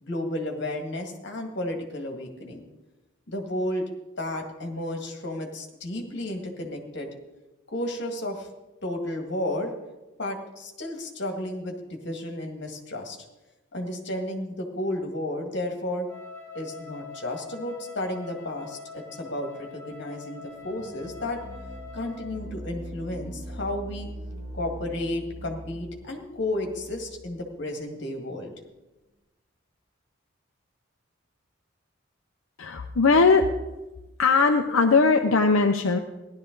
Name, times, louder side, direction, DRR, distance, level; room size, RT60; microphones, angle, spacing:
voice 1, 0.0-2.7 3.3-3.9 4.2-7.1 7.7-8.5 8.8-9.7 10.2-13.2 13.7-16.1 16.5-21.4 21.9-24.1 24.5-28.5, left 1 dB, 55° left, 3 dB, 1.9 m, -32 dB
Wind instrument woodwind instrument, 16.1-22.5, left 5 dB, 15° left, 2.4 m, -44 dB
sound 1, 20.5-27.7, equal, 15° right, 3.4 m, -41 dB
voice 2, 32.6-33.5 34.2-36.0, left 4 dB, 80° left, 4 dB, 0.7 m, -19 dB
16.0 x 11.5 x 3.9 m, 1.1 s
head